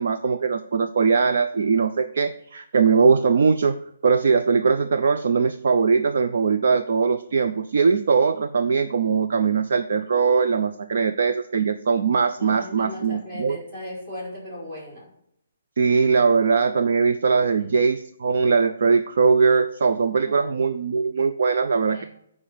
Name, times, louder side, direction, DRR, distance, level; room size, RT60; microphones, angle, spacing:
voice 1, 0.0-3.7 4.0-13.6 15.8-22.0, right 5 dB, 50° right, 10 dB, 0.5 m, -21 dB
voice 2, 12.4-15.0 17.6-17.7 20.2-20.5 21.9-22.1, left 1 dB, 25° right, -5 dB, 4.3 m, -37 dB
9.2 x 4.9 x 7.2 m, 0.74 s
hypercardioid pair, 180°, 0 cm